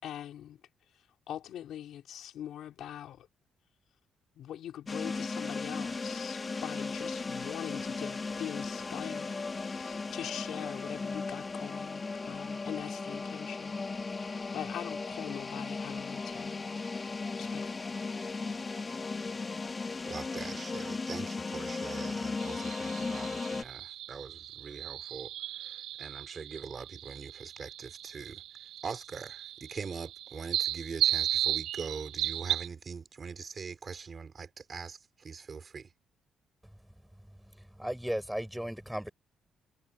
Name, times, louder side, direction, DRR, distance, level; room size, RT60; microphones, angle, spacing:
voice 1, 0.0-0.6 1.3-3.3 4.4-13.8 14.2-16.8 17.4-17.7, left 11 dB, 75° left, 4.0 m, -42 dB
sound 1, 4.9-23.6, left 4 dB, 30° left, 2.1 m, -36 dB
voice 2, 20.1-35.9, right 5 dB, 40° right, 4.7 m, -42 dB
sound 2, 22.4-32.7, right 13 dB, 85° right, 6.6 m, -35 dB
voice 3, 37.8-39.1, equal, 5° right, 5.9 m, -35 dB
cardioid pair, 90°, 0 cm